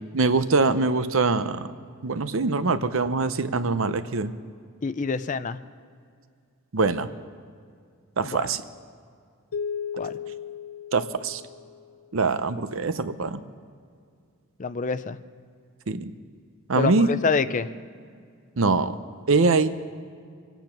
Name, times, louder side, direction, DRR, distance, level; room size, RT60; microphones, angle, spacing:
voice 1, 0.1-1.7 2.0-4.3 6.7-7.1 8.2-8.6 10.9-11.4 12.1-13.4 15.9-16.1 16.7-17.1 18.6-18.9 19.3-19.7, right 3 dB, 65° right, 11 dB, 0.7 m, -23 dB
voice 2, 4.8-5.6 8.2-8.4 9.9-10.1 14.6-15.2 16.7-17.7, left 4 dB, 35° left, 13 dB, 0.4 m, -26 dB
sound 1, 9.5-12.1, left 7 dB, 90° left, 0.6 m, -35 dB
25.5 x 9.2 x 5.9 m, 2.2 s
head